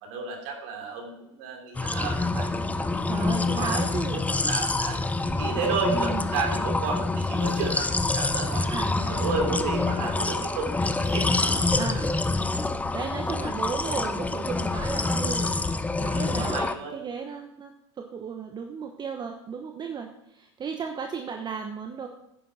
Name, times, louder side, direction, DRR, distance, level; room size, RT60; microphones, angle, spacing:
voice 1, 0.0-3.8 4.1-8.7 9.0-12.0 16.0-17.1, right 5 dB, 65° right, 2 dB, 3.3 m, -33 dB
sound 1, 1.7-16.7, left 3 dB, 10° left, 0.6 m, -26 dB
voice 2, 3.1-4.2 5.9-6.3 7.4-7.6 8.7-9.3 9.6-9.8 11.8-12.1 12.9-15.6 16.0-22.1, right 6 dB, 30° right, 5 dB, 1.1 m, -35 dB
10.5 x 9.3 x 4.3 m, 0.83 s
hypercardioid pair, 85°, 15 cm